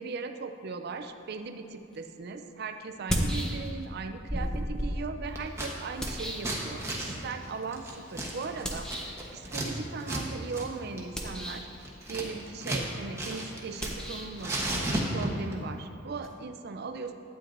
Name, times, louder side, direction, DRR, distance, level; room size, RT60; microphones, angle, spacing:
voice 1, 0.0-11.7 12.1-17.1, right 4 dB, 55° right, 7 dB, 0.5 m, -38 dB
sound 1, 1.9-2.0 2.9-4.0 4.3-7.1 8.6-9.3 11.0-11.8 13.7-16.3, equal, 5° left, 0.7 m, -35 dB
Scissors, 5.3-5.7 6.0-9.7 10.0-10.2 10.5-10.7 11.0-12.9 13.1-14.1 14.4-15.5, right 1 dB, 15° right, 1.0 m, -34 dB
11.5 x 8.8 x 2.6 m, 2.7 s
head